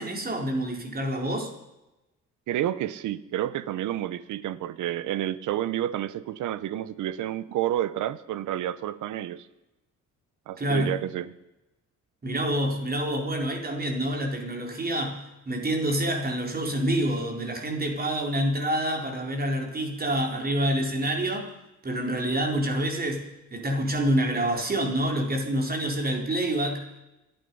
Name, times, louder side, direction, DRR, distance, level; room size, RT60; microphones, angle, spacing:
voice 1, 0.0-1.5 10.6-10.9 12.2-21.5 21.8-27.0, right 1 dB, 30° right, 2 dB, 4.2 m, -27 dB
voice 2, 2.5-9.5 10.5-11.3, right 12 dB, 80° right, 16 dB, 0.9 m, -30 dB
27.0 x 9.2 x 5.5 m, 0.95 s
cardioid pair, 90°, 30 cm